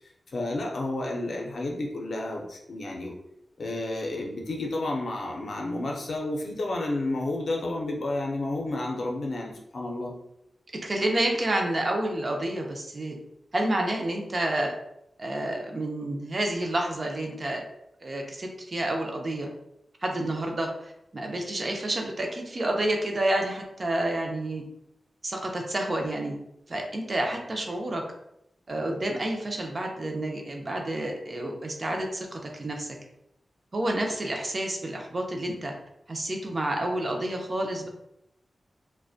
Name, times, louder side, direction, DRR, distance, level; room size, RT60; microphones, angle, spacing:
voice 1, 0.3-3.1 3.6-10.1, left 2 dB, 60° left, 0 dB, 0.5 m, -31 dB
voice 2, 10.7-13.2 13.5-14.7 15.2-17.6 18.0-19.5 20.0-24.6 25.2-26.4 26.7-28.0 28.7-32.9 33.7-35.7 36.1-37.9, right 1 dB, 35° right, 1 dB, 0.4 m, -29 dB
2.5 x 2.1 x 2.4 m, 0.80 s
wide cardioid pair, 150°, 0 cm